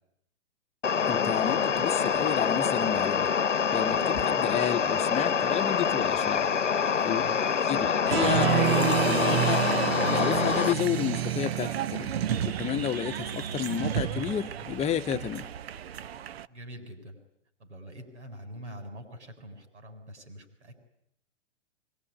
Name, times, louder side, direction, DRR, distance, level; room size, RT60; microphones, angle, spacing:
sound 1, 0.8-10.7, left 6 dB, 85° left, 1.0 m, -26 dB
voice 1, 1.1-3.3 3.7-6.5 7.0-7.2 7.7-9.7 10.1-12.1 12.4-15.4, left 10 dB, 20° left, 1.2 m, -31 dB
voice 2, 7.1-7.4 7.7-7.9 16.5-17.2 17.6-20.8, equal, 75° right, 7.6 m, -45 dB
Applause, 8.1-16.4, right 11 dB, 60° right, 1.1 m, -29 dB
24.0 x 24.0 x 10.0 m
figure-of-eight pair, 110°, 35 cm